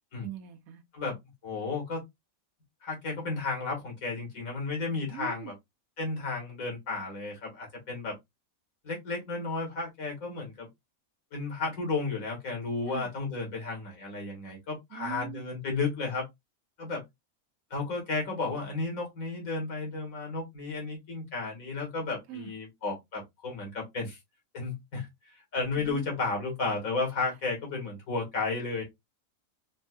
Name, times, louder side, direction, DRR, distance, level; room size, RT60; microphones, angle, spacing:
voice 1, 0.2-0.8 5.1-5.5 12.9-13.1 14.9-15.4 22.3-22.5 25.8-26.1, right 11 dB, 85° right, 1.1 m, -41 dB
voice 2, 1.4-2.0 2.8-5.5 6.0-8.2 8.8-10.7 11.3-16.2 16.8-17.0 17.7-24.2 24.5-25.1 25.5-28.8, left 3 dB, 80° left, 2.1 m, -33 dB
4.4 x 2.6 x 2.2 m
omnidirectional pair, 1.4 m